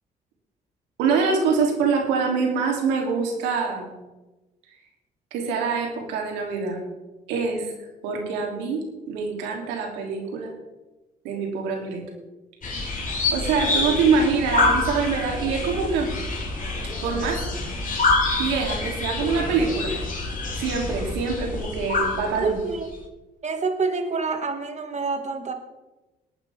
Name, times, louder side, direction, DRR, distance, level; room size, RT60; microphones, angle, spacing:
voice 1, 1.0-3.9 5.3-6.8 7.3-7.7 8.0-10.5 11.2-12.0 12.7-16.1 17.0-17.7 18.3-19.9 20.6-22.6, right 5 dB, 90° right, 0 dB, 3.2 m, -25 dB
sound 1, 12.6-22.9, left 3 dB, 50° left, 4.0 m, -26 dB
voice 2, 22.3-22.9 23.4-25.5, right 4 dB, 40° right, 5 dB, 2.2 m, -27 dB
20.0 x 9.2 x 3.7 m, 1.1 s
supercardioid pair, 65°, 17 cm